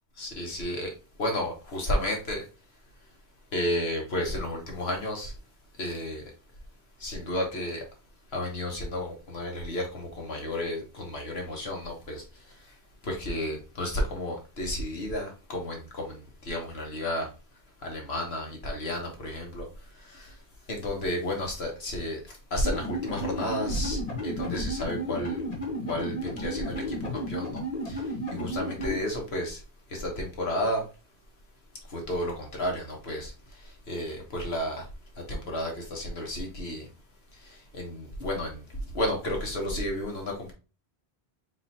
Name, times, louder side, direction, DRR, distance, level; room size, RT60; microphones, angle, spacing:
voice 1, 0.2-0.9 1.2-2.4 3.5-5.3 5.8-6.2 7.0-7.8 8.3-12.2 13.0-17.3 17.8-19.7 20.0-20.3 20.7-25.4 25.9-28.0 28.3-29.6 29.9-30.8 31.9-33.3 33.9-34.8 35.2-36.9 37.4-38.6 38.9-40.5, left 1 dB, 80° left, 1.5 m, -32 dB
sound 1, 22.6-29.0, equal, 40° left, 1.4 m, -33 dB
4.4 x 3.8 x 2.8 m
omnidirectional pair, 1.0 m